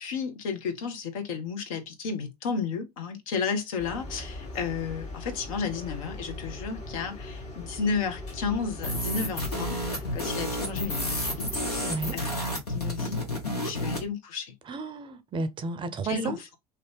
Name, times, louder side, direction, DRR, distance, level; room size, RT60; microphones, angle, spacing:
voice 1, 0.0-13.2 13.6-14.5 16.0-16.6, left 5 dB, 60° left, 0.9 m, -33 dB
sound 1, 3.8-12.2, left 2 dB, 40° left, 1.3 m, -40 dB
sound 2, 8.8-14.1, left 1 dB, 80° left, 1.2 m, -31 dB
voice 2, 11.8-12.2 14.7-16.4, right 3 dB, 25° right, 0.5 m, -32 dB
2.8 x 2.7 x 3.3 m
figure-of-eight pair, 70°, 20 cm